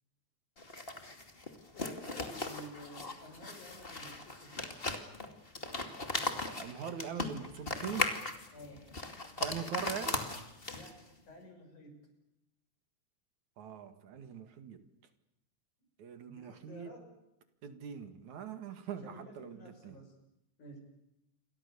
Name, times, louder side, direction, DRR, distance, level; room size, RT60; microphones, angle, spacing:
sound 1, 0.6-11.1, left 2 dB, 20° left, 2.4 m, -38 dB
voice 1, 1.7-4.8 8.5-8.9 10.7-12.1 16.3-17.1 19.0-20.1 20.6-20.8, left 1 dB, 85° left, 4 dB, 7.9 m, -52 dB
voice 2, 6.6-8.2 9.4-10.2 13.6-14.8 16.0-17.0 17.6-20.0, right 8 dB, 75° right, 9 dB, 3.3 m, -42 dB
28.5 x 23.0 x 7.0 m, 0.85 s
omnidirectional pair, 3.4 m